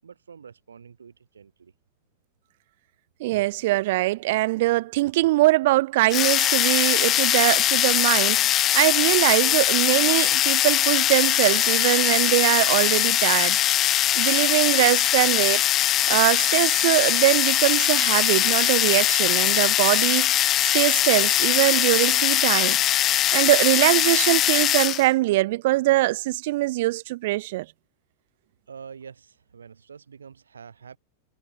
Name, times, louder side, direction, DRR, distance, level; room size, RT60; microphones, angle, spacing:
voice 1, 0.0-1.7 28.7-31.0, right 6 dB, 70° right, 7.3 m, -46 dB
voice 2, 3.2-13.6 14.1-15.6 16.1-22.8 23.3-27.7, right 18 dB, 50° right, 0.5 m, -22 dB
sound 1, 6.1-25.1, left 13 dB, 30° left, 0.4 m, -21 dB
figure-of-eight pair, 90°, 0 cm